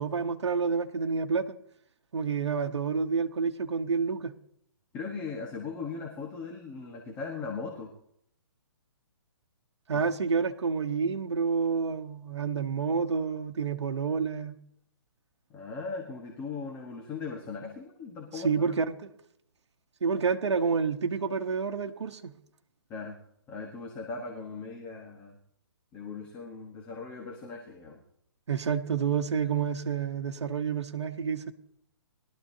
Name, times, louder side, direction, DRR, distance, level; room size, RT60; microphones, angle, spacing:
voice 1, 0.0-1.6 2.1-4.3 9.9-14.6 18.3-19.1 20.0-22.3 28.5-31.5, right 5 dB, 90° right, 1.0 m, -29 dB
voice 2, 4.9-7.9 9.9-10.1 15.5-18.6 22.9-23.2 23.5-25.4 25.9-28.0, left 4 dB, 15° left, 1.2 m, -39 dB
21.5 x 12.5 x 2.8 m
hypercardioid pair, 170°, 14 cm